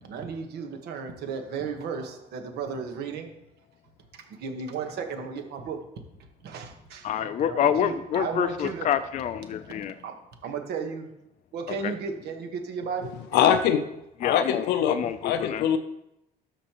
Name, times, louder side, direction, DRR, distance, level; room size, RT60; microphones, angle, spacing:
voice 1, 0.0-3.3 4.2-5.8 6.4-8.9 10.0-10.1 10.4-11.1 11.5-13.4, right 5 dB, 75° right, 5 dB, 1.3 m, -34 dB
voice 2, 7.0-9.9 11.8-11.9 14.2-15.6, left 9 dB, 45° left, 11 dB, 0.4 m, -27 dB
voice 3, 13.3-13.8 14.2-15.8, left 9 dB, 85° left, 9 dB, 0.6 m, -23 dB
12.5 x 5.2 x 3.0 m, 0.84 s
cardioid pair, 110°, 17 cm